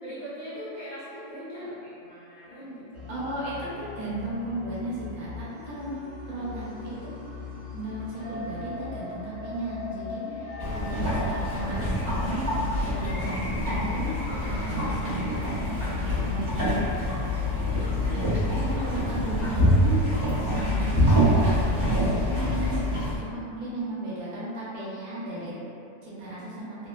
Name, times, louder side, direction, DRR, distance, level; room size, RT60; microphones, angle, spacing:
voice 1, 0.0-3.0 10.1-10.3 12.8-13.2 17.8-18.3, equal, 45° left, -16 dB, 0.6 m, -41 dB
sound 1, 2.9-19.9, left 5 dB, 90° right, 1.2 m, -42 dB
voice 2, 3.1-7.0 7.7-12.4 12.7-14.1 14.4-16.5 16.7-17.3 18.4-20.1 20.4-21.5 21.8-25.5 26.0-26.8, right 2 dB, 70° right, -9 dB, 1.1 m, -35 dB
sound 2, 8.2-22.2, left 2 dB, 70° left, 1.0 m, -42 dB
sound 3, 10.6-23.2, equal, 40° right, 0.7 m, -25 dB
3.0 x 2.1 x 2.2 m, 2.5 s
omnidirectional pair, 1.6 m